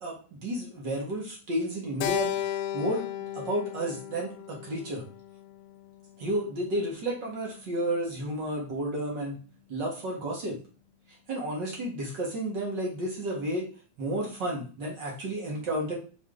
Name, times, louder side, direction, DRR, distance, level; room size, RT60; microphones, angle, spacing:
voice 1, 0.0-2.4 2.7-5.1 6.2-9.4 9.7-10.6 11.3-13.7 14.0-15.9, right 1 dB, 40° right, -2 dB, 2.1 m, -32 dB
Keyboard (musical), 2.0-6.4, left 11 dB, 80° left, 1.8 m, -35 dB
5.8 x 4.2 x 4.0 m, 0.37 s
omnidirectional pair, 3.5 m